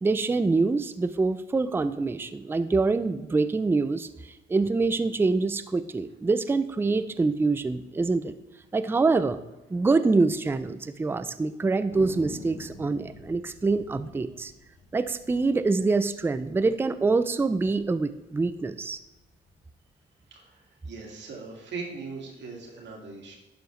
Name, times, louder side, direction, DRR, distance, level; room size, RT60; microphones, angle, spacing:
voice 1, 0.0-8.3 8.7-9.4 9.7-14.5 14.9-19.0, right 3 dB, 10° right, 12 dB, 0.4 m, -25 dB
Thunder, 11.9-16.7 17.0-17.1 17.3-17.9 18.3-19.5, left 2 dB, 90° left, 1.7 m, -46 dB
voice 2, 20.3-23.4, right 4 dB, 65° right, 0 dB, 2.0 m, -40 dB
11.0 x 5.0 x 3.1 m, 0.99 s
cardioid pair, 90°, 20 cm